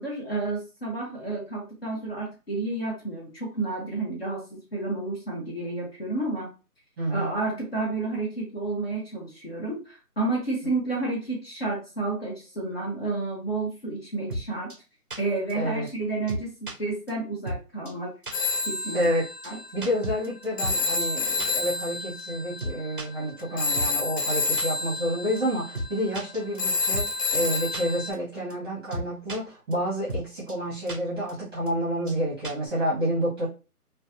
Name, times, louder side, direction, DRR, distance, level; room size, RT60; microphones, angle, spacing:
voice 1, 0.0-6.5 7.1-14.7 15.2-18.1 18.7-19.1 19.4-19.6, right 3 dB, 40° left, -2 dB, 0.8 m, -31 dB
voice 2, 7.0-7.3 15.5-15.9 18.9-19.2 19.7-33.5, equal, 15° right, -8 dB, 1.1 m, -29 dB
sound 1, 14.3-14.4 14.7-14.8 15.1-15.2 15.5-15.6 15.9-16.0 16.3-16.7 17.1-17.2 17.5-17.6 17.9-18.0 18.2-18.3 18.7-18.8 19.0-19.1 19.4-19.5 19.8-20.8 21.0-21.1 21.4-21.5 21.8-21.9 22.2-22.3 22.6-23.1 23.4-23.5 23.8-23.9 24.2-24.3 24.6-24.7 25.0-25.1 25.4-25.5 25.7-25.9 26.1-27.1 27.3-27.4 27.7-27.8 28.1-28.2 28.5-28.6 28.9-29.4 29.7-29.8 30.1-30.2 30.5-30.6 30.9-31.0 31.3-31.4 31.7-31.8 32.1-32.2 32.4-32.7, right 1 dB, 35° right, 0.5 m, -33 dB
Telephone, 18.3-28.1, left 3 dB, 75° left, 0.8 m, -29 dB
2.6 x 2.3 x 2.6 m, 0.33 s
figure-of-eight pair, 165°, 46 cm